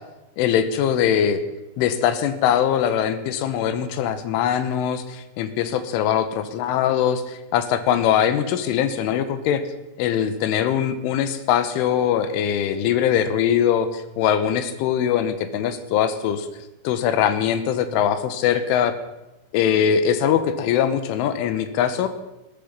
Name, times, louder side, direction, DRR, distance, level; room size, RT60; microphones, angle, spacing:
voice 1, 0.4-1.4 1.8-9.6 10.0-16.5 16.8-18.9 19.5-22.1, left 9 dB, 75° left, 11 dB, 3.4 m, -22 dB
16.0 x 13.5 x 5.4 m, 0.97 s
omnidirectional pair, 5.9 m